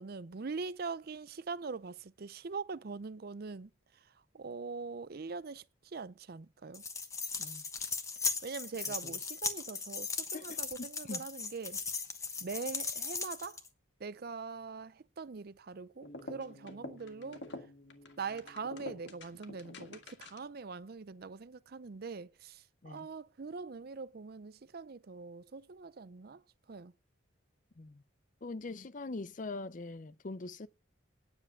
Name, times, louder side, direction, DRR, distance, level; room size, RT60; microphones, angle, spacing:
voice 1, 0.0-6.8 8.2-11.8 12.4-13.6 14.0-17.5 18.2-26.4 26.7-26.9, right 4 dB, 50° right, 0.5 m, -43 dB
sound 1, 6.7-13.7, left 4 dB, 15° left, 1.1 m, -38 dB
voice 2, 10.3-11.2 22.8-23.1 27.8-28.0 28.4-30.7, left 3 dB, 40° left, 0.6 m, -43 dB
sound 2, 16.0-20.6, left 2 dB, 60° left, 1.9 m, -48 dB
10.0 x 7.2 x 8.1 m
head